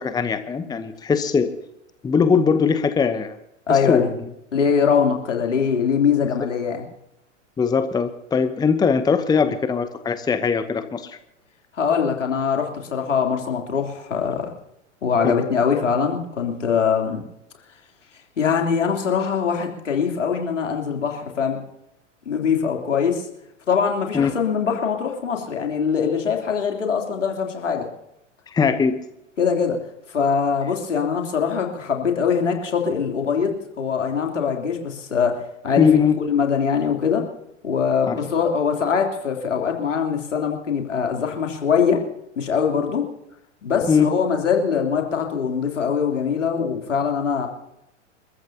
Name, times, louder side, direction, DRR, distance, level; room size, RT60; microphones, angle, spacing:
voice 1, 0.0-1.5 2.0-3.4 3.7-4.1 6.3-6.5 7.6-11.2 15.2-15.3 24.1-24.3 28.5-28.9 35.8-36.2 38.1-38.2 43.9-44.1, left 5 dB, 10° left, 10 dB, 0.9 m, -20 dB
voice 2, 3.7-4.1 4.5-6.8 11.7-14.5 15.0-17.2 18.4-21.6 22.2-23.3 23.7-27.9 29.4-29.8 30.1-35.9 36.2-37.3 37.6-42.0 42.3-43.0 43.6-47.5, left 6 dB, 75° left, 2 dB, 3.4 m, -22 dB
29.5 x 14.0 x 2.9 m, 0.83 s
figure-of-eight pair, 100°, 37 cm